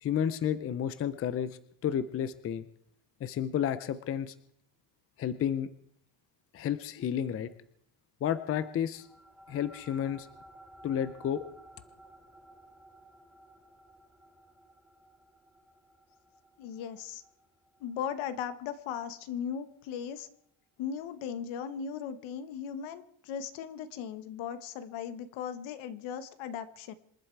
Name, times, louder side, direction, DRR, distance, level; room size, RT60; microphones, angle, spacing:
voice 1, 0.0-2.7 3.2-4.3 5.2-5.7 6.5-7.5 8.2-9.1 9.5-10.3 10.8-11.4, left 9 dB, 30° left, 14 dB, 0.6 m, -31 dB
sound 1, 8.9-19.7, right 1 dB, ahead, 1.1 m, -56 dB
voice 2, 16.6-17.2 17.8-20.3 20.8-26.9, left 8 dB, 70° left, 12 dB, 1.6 m, -37 dB
27.0 x 11.0 x 4.7 m, 0.67 s
cardioid pair, 175°, 48 cm